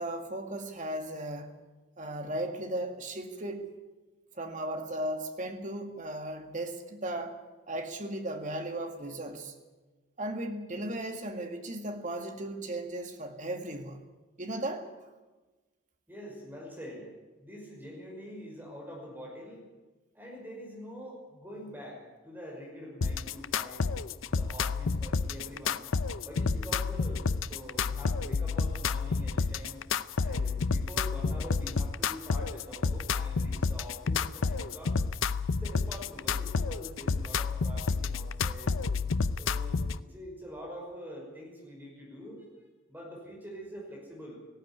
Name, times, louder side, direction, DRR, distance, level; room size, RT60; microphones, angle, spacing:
voice 1, 0.0-1.6 2.0-3.7 4.4-7.4 7.7-9.5 10.2-14.0 14.4-14.9, right 1 dB, 40° right, 5 dB, 2.1 m, -36 dB
voice 2, 16.1-17.1 17.4-19.6 20.1-23.9 24.3-25.9 26.2-29.8 30.2-35.0 35.6-38.7 39.4-42.5 42.9-44.4, equal, 10° right, -2 dB, 5.7 m, -45 dB
sound 1, 23.0-40.0, left 4 dB, 85° left, 0.6 m, -30 dB
18.5 x 15.5 x 9.7 m, 1.2 s
head